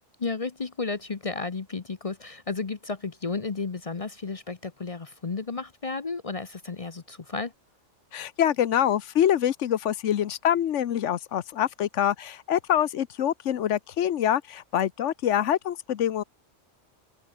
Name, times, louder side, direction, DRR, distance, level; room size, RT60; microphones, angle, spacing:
voice 1, 0.2-7.5, left 4 dB, 35° left, 0.8 m, -33 dB
voice 2, 8.1-16.2, left 10 dB, 75° left, 1.1 m, -25 dB
omnidirectional pair, 1.3 m